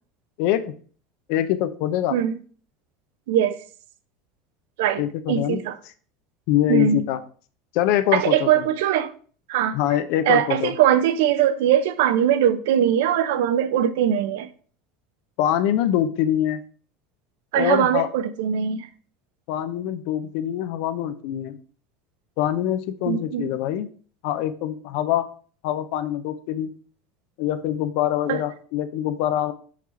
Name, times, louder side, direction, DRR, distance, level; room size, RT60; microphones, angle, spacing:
voice 1, 0.4-0.7 1.3-2.2 5.0-5.6 6.5-7.2 7.7-8.6 9.7-10.7 15.4-16.6 17.5-18.1 19.5-21.6 22.4-23.9 24.2-25.3 25.6-26.7 27.4-29.5, left 11 dB, 70° left, 0.6 m, -24 dB
voice 2, 3.3-3.6 4.8-5.0 5.3-5.7 6.7-7.0 8.1-9.1 9.5-9.8 10.3-14.5 17.5-18.9 23.1-23.5 28.3-28.4, right 10 dB, 80° right, 0.6 m, -21 dB
5.8 x 3.1 x 5.7 m
supercardioid pair, 115°, 0 cm